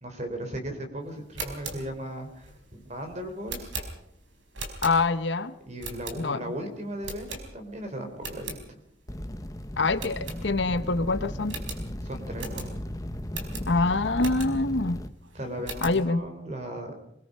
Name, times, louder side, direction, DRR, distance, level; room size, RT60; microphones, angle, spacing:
voice 1, 0.0-3.7 4.7-4.8 5.7-8.8 12.0-12.7 15.3-16.9, right 1 dB, 35° right, 6 dB, 3.9 m, -37 dB
sound 1, 1.2-5.3 5.8-6.5 7.0-7.8 8.1-8.6 9.1-9.2 9.4-9.5 10.0-10.9 11.1-11.2 11.5-14.8 15.2-16.0, right 3 dB, 90° right, 4.6 m, -39 dB
voice 2, 4.8-5.5 6.2-6.4 9.8-11.6 13.7-15.0 15.8-16.2, left 3 dB, 75° left, 12 dB, 1.0 m, -25 dB
sound 2, 9.1-15.1, left 1 dB, 20° left, 1.0 m, -36 dB
23.5 x 21.0 x 5.5 m, 0.72 s
head